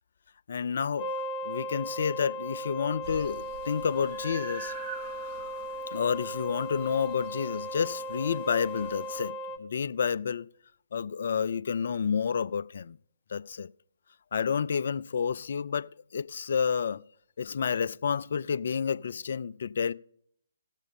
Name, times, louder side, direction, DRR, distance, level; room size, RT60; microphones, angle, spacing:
voice 1, 0.5-1.1 1.4-4.7 5.9-10.5 10.9-13.0 13.3-13.7 14.3-17.0 17.4-19.9, left 6 dB, 55° left, 0.3 m, -30 dB
sound 1, 1.0-9.6, equal, 15° left, 0.9 m, -37 dB
sound 2, 3.0-9.3, right 6 dB, 30° right, 0.9 m, -47 dB
17.5 x 7.3 x 3.6 m
figure-of-eight pair, 135°, 0 cm